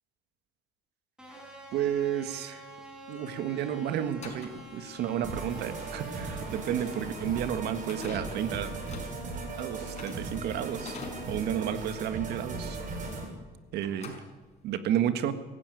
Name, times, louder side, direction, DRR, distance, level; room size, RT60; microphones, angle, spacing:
sound 1, 1.2-11.3, equal, 5° right, 7.1 m, -49 dB
voice 1, 1.7-2.6 3.1-8.7 9.6-11.0 11.3-12.8 13.7-14.2 14.6-15.3, right 10 dB, 75° right, 10 dB, 1.7 m, -31 dB
sound 2, 4.2-13.5 13.8-14.8, left 4 dB, 40° left, 5.6 m, -47 dB
sound 3, 5.2-13.2, right 3 dB, 50° right, 7.1 m, -38 dB
23.5 x 15.5 x 9.4 m, 1.3 s
cardioid pair, 110°, 17 cm